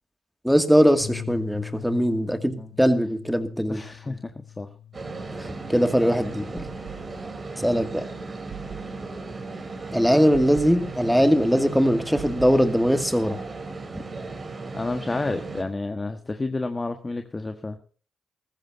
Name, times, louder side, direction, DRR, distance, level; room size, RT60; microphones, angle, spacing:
voice 1, 0.4-3.8 5.4-6.7 7.6-8.1 9.9-13.4, equal, ahead, 8 dB, 2.2 m, -21 dB
Bass guitar, 1.0-7.2, left 9 dB, 80° left, 3.4 m, -42 dB
voice 2, 3.7-4.7 14.7-17.8, left 2 dB, 25° left, 7 dB, 1.5 m, -30 dB
sound 1, 4.9-15.6, right 3 dB, 40° right, 3.7 m, -36 dB
sound 2, 6.6-7.6 8.5-9.4 10.3-11.4 12.2-13.2, right 11 dB, 80° right, 1.8 m, -43 dB
20.0 x 14.5 x 2.7 m, 0.39 s
supercardioid pair, 60°, 0 cm